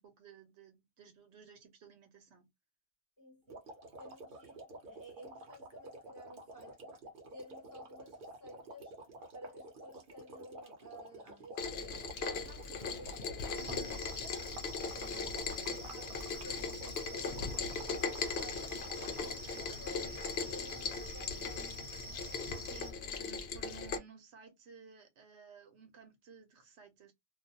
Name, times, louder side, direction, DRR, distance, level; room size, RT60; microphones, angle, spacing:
voice 1, 0.0-2.5 22.7-22.9 23.2-27.1, right 6 dB, 85° right, 1.0 m, -56 dB
voice 2, 3.2-7.0 7.3-9.0 9.3-16.8 17.1-18.9 19.2-21.9, equal, 20° left, 0.7 m, -54 dB
sound 1, 3.5-19.9, right 2 dB, 55° right, 0.9 m, -50 dB
Rain, 11.6-24.0, left 5 dB, 70° left, 0.8 m, -39 dB
sound 2, 13.5-22.9, equal, 10° right, 0.9 m, -47 dB
2.4 x 2.3 x 2.7 m
omnidirectional pair, 1.1 m